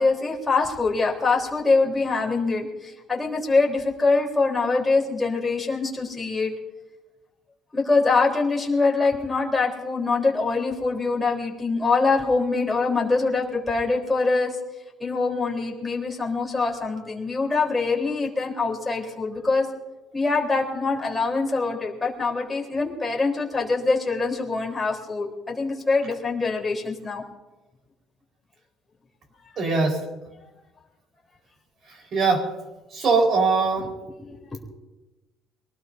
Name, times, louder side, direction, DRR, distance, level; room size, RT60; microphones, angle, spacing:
voice 1, 0.0-6.5 7.7-14.6 15.0-19.7 20.1-27.2 34.2-34.6, left 3 dB, 10° left, -3 dB, 3.9 m, -24 dB
voice 2, 29.6-30.0 32.1-32.4 32.9-33.9, right 4 dB, 40° right, 2 dB, 4.7 m, -21 dB
24.0 x 19.5 x 2.8 m, 1.1 s
cardioid pair, 140°, 0 cm